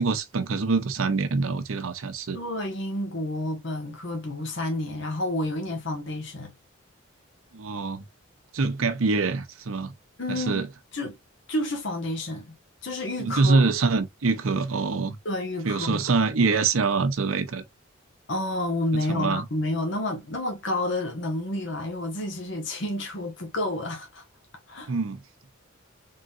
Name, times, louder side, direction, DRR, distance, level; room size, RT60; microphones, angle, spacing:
voice 1, 0.0-2.4 7.5-8.0 8.5-9.9 10.3-10.7 13.2-15.2 15.6-17.6 18.9-19.4 24.9-25.2, right 4 dB, 85° right, 0.7 m, -25 dB
voice 2, 2.3-6.5 10.2-10.7 10.9-11.2 11.5-12.6 12.8-13.6 15.2-16.0 18.3-24.2 24.7-24.9, left 1 dB, 60° left, 1.2 m, -30 dB
3.9 x 3.6 x 2.4 m
head